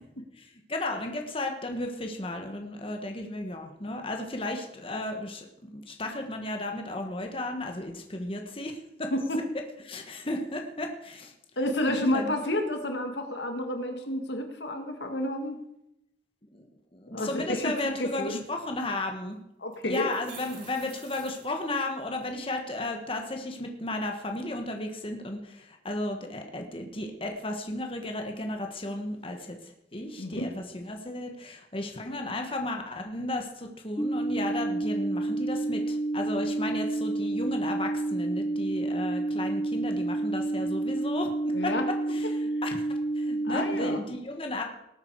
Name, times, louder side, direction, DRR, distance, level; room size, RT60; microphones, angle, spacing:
voice 1, 0.4-5.5 5.7-9.1 9.9-11.3 11.9-12.3 16.5-16.7 16.9-19.4 19.8-41.7 42.1-42.8 43.2-44.6, left 1 dB, 30° left, 3 dB, 1.6 m, -34 dB
voice 2, 9.1-9.4 11.6-15.6 17.1-18.4 19.6-20.1 30.2-30.5 41.5-41.8 42.2-42.3 43.4-44.0, left 1 dB, 80° left, 5 dB, 2.0 m, -30 dB
sound 1, 19.1-19.2 19.7-22.2, right 4 dB, 50° right, 5.2 m, -49 dB
sound 2, 34.0-44.0, right 2 dB, 15° left, 0.6 m, -29 dB
19.0 x 8.8 x 4.8 m, 0.83 s
head